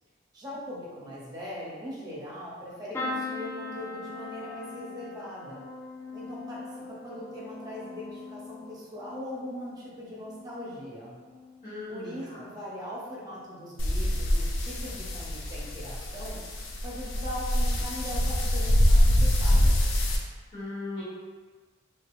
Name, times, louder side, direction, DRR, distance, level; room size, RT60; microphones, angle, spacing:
voice 1, 0.3-5.7 6.1-6.6 7.0-11.2 11.9-16.4 16.8-19.8, equal, 20° right, -6 dB, 0.9 m, -40 dB
sound 1, 2.9-10.8 11.2-11.8 13.0-13.2 13.5-13.6, left 3 dB, 10° left, 0.3 m, -40 dB
voice 2, 11.6-12.4 20.5-21.0, left 2 dB, 45° left, -13 dB, 1.5 m, -38 dB
sound 2, 13.8-20.2, equal, 80° left, 0.5 m, -24 dB
3.3 x 2.3 x 3.0 m, 1.4 s
head